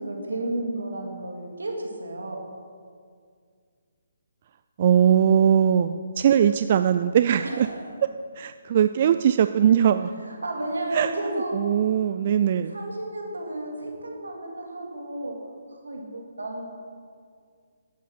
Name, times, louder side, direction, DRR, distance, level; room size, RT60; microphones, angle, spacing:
voice 1, 0.0-2.4 7.4-7.9 10.2-11.6 12.0-12.3 12.7-15.4 15.7-16.6, right 1 dB, 85° right, 0 dB, 2.8 m, -32 dB
voice 2, 4.8-7.7 8.4-10.1 10.9-11.1 11.5-12.8, right 9 dB, 45° right, 11 dB, 0.3 m, -20 dB
12.0 x 8.4 x 5.9 m, 2.1 s
figure-of-eight pair, 145°, 0 cm